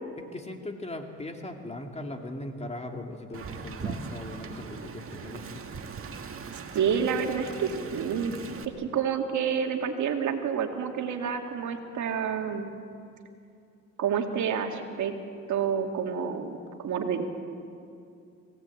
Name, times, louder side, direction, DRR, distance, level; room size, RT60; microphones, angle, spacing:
voice 1, 0.3-5.6, left 1 dB, 20° left, 3 dB, 2.4 m, -39 dB
Wind, 3.3-8.6, right 5 dB, 45° right, 1.9 m, -39 dB
voice 2, 6.7-8.3 8.8-12.7 14.0-15.1 15.5-17.2, right 7 dB, 75° right, 4 dB, 2.3 m, -29 dB
26.5 x 17.0 x 8.5 m, 2.5 s
cardioid pair, 90°, 30 cm